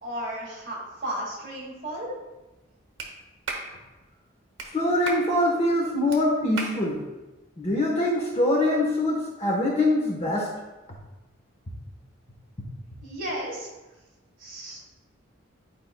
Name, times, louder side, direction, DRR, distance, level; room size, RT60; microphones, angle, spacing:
voice 1, 0.0-2.1 13.0-13.7 14.4-14.8, right 1 dB, 45° right, -4 dB, 2.0 m, -34 dB
Clapping, 3.0-3.1 3.5-3.7 4.6-4.7 5.1-5.3 6.1-6.2 6.6-6.8, right 3 dB, 70° right, 1.1 m, -33 dB
voice 2, 4.7-7.0 7.6-10.5, left 1 dB, 30° left, -1 dB, 1.1 m, -23 dB
11.0 x 4.8 x 2.2 m, 1.1 s
head